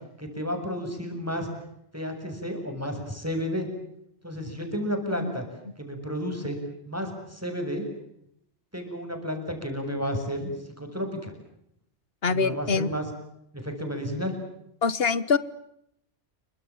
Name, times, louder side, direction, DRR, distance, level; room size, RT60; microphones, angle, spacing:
voice 1, 0.2-1.5 1.9-3.7 4.2-5.4 5.8-6.6 6.8-7.9 8.7-11.3 12.3-13.1 13.6-14.3, equal, 10° right, 4 dB, 7.1 m, -32 dB
voice 2, 12.2-12.9 14.8-15.4, left 4 dB, 60° left, 16 dB, 1.5 m, -24 dB
29.0 x 24.5 x 7.3 m, 0.76 s
omnidirectional pair, 1.2 m